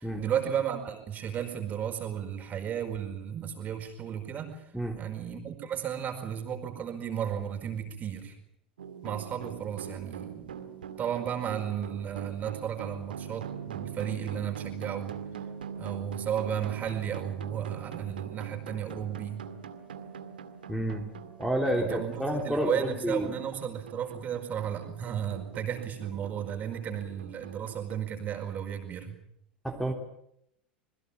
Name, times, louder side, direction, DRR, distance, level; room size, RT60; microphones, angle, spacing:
voice 1, 0.0-4.6 5.0-8.3 9.0-10.5 11.0-15.2 15.8-19.4 21.8-29.2, right 9 dB, 30° right, 6 dB, 4.8 m, -34 dB
sound 1, 8.8-28.0, right 7 dB, 70° right, 2.0 m, -43 dB
voice 2, 20.7-21.0 21.4-23.3 29.6-29.9, equal, ahead, 3 dB, 3.4 m, -29 dB
27.0 x 21.5 x 7.3 m, 0.76 s
figure-of-eight pair, 80°, 5 cm